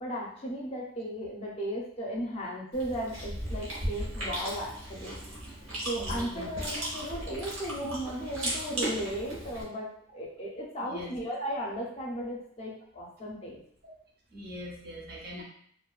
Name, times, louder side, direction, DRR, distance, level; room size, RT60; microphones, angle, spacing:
voice 1, 0.0-5.2 5.8-13.6, equal, 30° left, -3 dB, 0.5 m, -36 dB
Chewing mastication, 2.7-9.6, right 1 dB, 90° right, 1.0 m, -36 dB
voice 2, 6.0-6.5 10.8-11.1 13.8-13.9 14.3-15.4, equal, 50° right, -1 dB, 0.5 m, -42 dB
2.5 x 2.2 x 2.3 m, 0.63 s
head